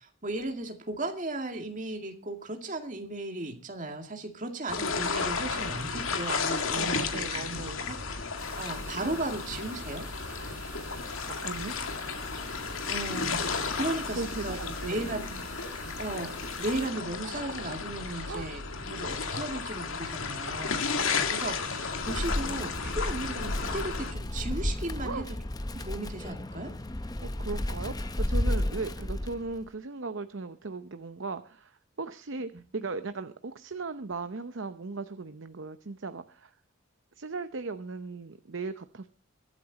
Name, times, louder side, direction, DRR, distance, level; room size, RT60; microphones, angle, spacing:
voice 1, 0.0-8.0 8.2-10.1 12.9-13.5 13.7-14.6 14.9-15.4 16.0-20.9 21.3-25.3 25.7-26.7, right 2 dB, 35° right, 4 dB, 2.2 m, -36 dB
sound 1, 4.7-24.1, left 5 dB, 75° left, 2.0 m, -33 dB
voice 2, 6.7-7.9 11.4-11.8 14.2-15.1 18.2-18.5 25.0-25.3 27.2-36.5 37.2-39.1, right 3 dB, 65° right, 10 dB, 0.7 m, -37 dB
sound 2, 8.4-16.9, right 1 dB, 10° right, 6.1 m, -48 dB
Wind, 21.9-29.7, left 1 dB, 20° left, 0.6 m, -33 dB
23.0 x 8.6 x 4.1 m, 0.34 s
head